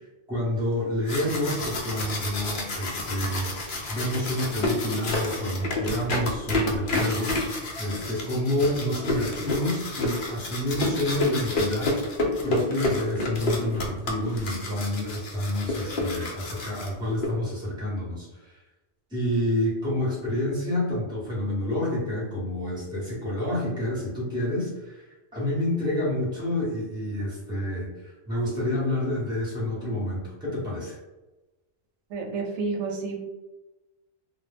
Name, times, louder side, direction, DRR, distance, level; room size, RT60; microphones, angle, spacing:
voice 1, 0.3-3.5 3.9-7.3 7.8-11.9 12.4-18.6 19.1-31.0, left 1 dB, 5° right, -6 dB, 0.7 m, -28 dB
sound 1, 0.8-17.3, left 2 dB, 60° left, 0.6 m, -30 dB
voice 2, 32.1-33.2, right 4 dB, 85° right, 2 dB, 0.9 m, -30 dB
2.2 x 2.0 x 3.2 m, 1.1 s
omnidirectional pair, 1.2 m